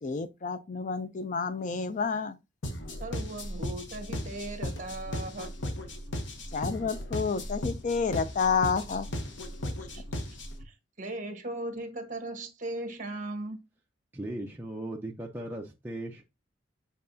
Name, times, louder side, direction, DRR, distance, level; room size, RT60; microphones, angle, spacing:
voice 1, 0.0-2.4 6.5-9.1, left 5 dB, 40° left, 0.4 m, -29 dB
sound 1, 2.6-10.6, left 1 dB, 70° left, 1.0 m, -36 dB
voice 2, 3.0-5.6 9.9-10.0 10.6-13.6, right 2 dB, 40° right, 1.3 m, -38 dB
voice 3, 14.1-16.2, right 1 dB, 10° right, 0.6 m, -37 dB
7.6 x 4.6 x 2.7 m
head